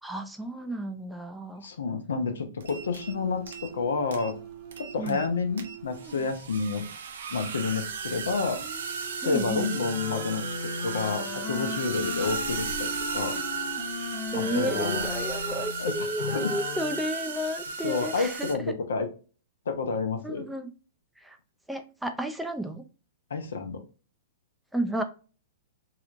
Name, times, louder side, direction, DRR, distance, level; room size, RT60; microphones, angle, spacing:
voice 1, 0.0-1.7 5.0-5.2 9.2-9.7 14.3-18.7 20.2-20.7 21.2-21.4 21.7-22.8 24.7-25.0, equal, 5° right, 6 dB, 0.4 m, -32 dB
voice 2, 1.6-4.3 4.8-6.9 7.3-8.6 9.2-13.4 14.3-15.1 15.8-15.9 16.2-16.5 17.8-19.1 19.7-20.4 23.3-23.8, left 4 dB, 85° left, 7 dB, 0.8 m, -29 dB
sound 1, 2.6-3.2 3.4-3.9 4.1-4.3 4.7-5.3 5.6-18.6, right 5 dB, 75° right, 0.6 m, -35 dB
sound 2, 2.7-6.6 8.4-15.1, right 7 dB, 45° right, 0.8 m, -45 dB
Wind instrument woodwind instrument, 9.7-17.0, left 6 dB, 40° left, 0.8 m, -37 dB
3.2 x 2.9 x 2.5 m, 0.35 s
hypercardioid pair, 120°, 0 cm